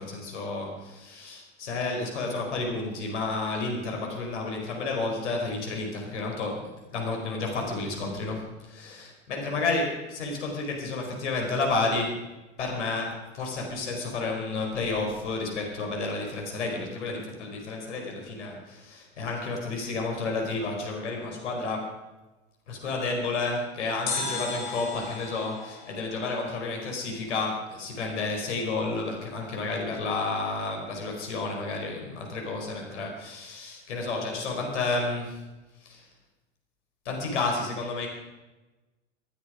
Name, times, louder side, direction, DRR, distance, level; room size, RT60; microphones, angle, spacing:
voice 1, 0.0-12.2 12.6-22.0 22.7-35.4 35.8-36.0 37.0-38.1, left 3 dB, 75° left, 1 dB, 4.8 m, -31 dB
sound 1, 24.1-27.1 27.4-27.5, left 4 dB, 60° left, 6.1 m, -36 dB
27.0 x 10.0 x 5.1 m, 1.1 s
hypercardioid pair, 85°, 35 cm